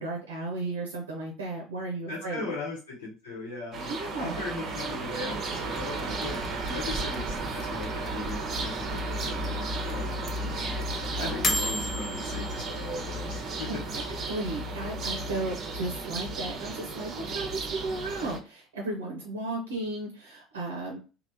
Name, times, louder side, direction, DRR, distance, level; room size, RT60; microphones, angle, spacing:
voice 1, 0.0-2.5 3.9-4.4 11.2-11.4 13.7-21.0, right 2 dB, 75° right, 0 dB, 0.7 m, -35 dB
voice 2, 2.1-10.9 11.1-14.0, left 3 dB, 70° left, -5 dB, 1.0 m, -39 dB
sound 1, 3.7-18.4, right 2 dB, 40° right, 0.8 m, -34 dB
sound 2, 5.3-14.4, left 1 dB, 35° left, 0.6 m, -38 dB
3.3 x 2.4 x 2.7 m, 0.33 s
figure-of-eight pair, 60°, 0 cm